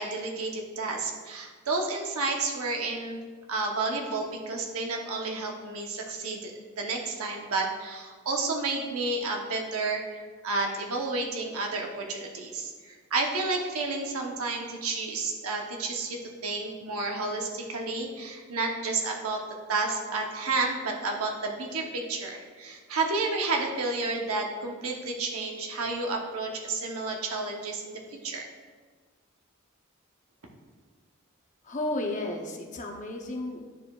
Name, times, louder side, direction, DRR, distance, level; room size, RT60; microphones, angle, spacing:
voice 1, 0.0-3.2 3.5-16.2 16.4-19.4 19.7-27.9 28.2-28.5, right 3 dB, 80° right, 1 dB, 0.9 m, -31 dB
voice 2, 31.6-33.6, left 1 dB, 35° left, 2 dB, 0.7 m, -33 dB
10.0 x 4.7 x 2.4 m, 1.5 s
head